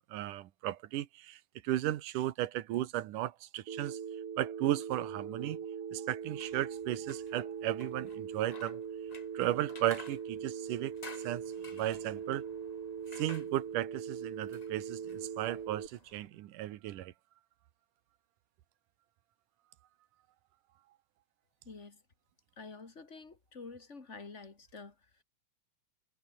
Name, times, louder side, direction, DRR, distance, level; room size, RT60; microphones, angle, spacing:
voice 1, 0.1-4.0 4.4-5.6 5.9-8.8 9.3-10.9 11.2-11.4 11.7-12.4 13.2-17.1, right 14 dB, 75° right, 2.7 m, -35 dB
Telephone, 3.7-15.9, right 7 dB, 50° right, 2.9 m, -41 dB
sound 1, 6.2-16.3, left 3 dB, 85° left, 0.3 m, -55 dB
voice 2, 21.6-22.0 22.6-25.2, left 4 dB, 20° left, 2.7 m, -49 dB
omnidirectional pair, 3.7 m